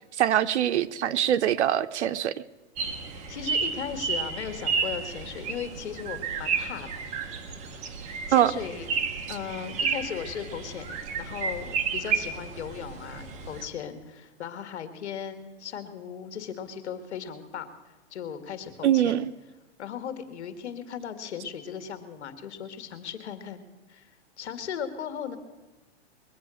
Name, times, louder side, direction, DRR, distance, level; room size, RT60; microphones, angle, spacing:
voice 1, 0.2-2.3 8.3-8.5 18.8-19.3, right 11 dB, 75° right, 11 dB, 0.8 m, -23 dB
sound 1, 2.8-13.7, right 5 dB, 20° right, 1.0 m, -32 dB
voice 2, 3.3-7.1 8.3-8.9 9.3-17.7 18.1-19.2 19.8-23.6 23.9-24.1 24.4-25.4, left 8 dB, 70° left, 10 dB, 2.1 m, -37 dB
22.0 x 8.4 x 6.4 m, 1.2 s
hypercardioid pair, 160°, 35 cm